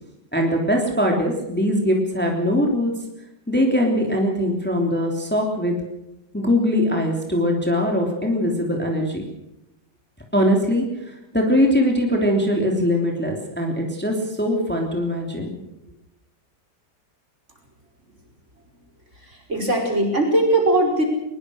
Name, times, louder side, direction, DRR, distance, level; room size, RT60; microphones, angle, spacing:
voice 1, 0.3-2.9 3.5-5.7 6.3-9.3 10.3-15.5, equal, 5° left, 1 dB, 3.1 m, -21 dB
voice 2, 19.2-21.0, right 2 dB, 45° right, 1 dB, 5.7 m, -20 dB
22.0 x 22.0 x 6.4 m, 0.90 s
omnidirectional pair, 1.8 m